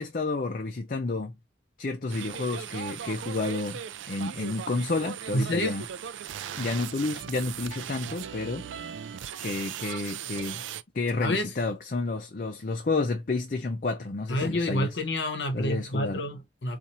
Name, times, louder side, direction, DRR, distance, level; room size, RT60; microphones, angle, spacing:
voice 1, 0.0-1.3 1.8-3.8 4.1-5.8 6.6-8.7 9.4-10.6 10.9-14.9 15.5-16.2, left 3 dB, 45° left, 0.5 m, -30 dB
sound 1, 2.1-10.8, right 9 dB, 80° right, 0.4 m, -38 dB
voice 2, 5.3-5.8 11.2-11.6 14.3-16.8, left 1 dB, 70° left, 0.9 m, -28 dB
4.2 x 2.5 x 4.2 m
head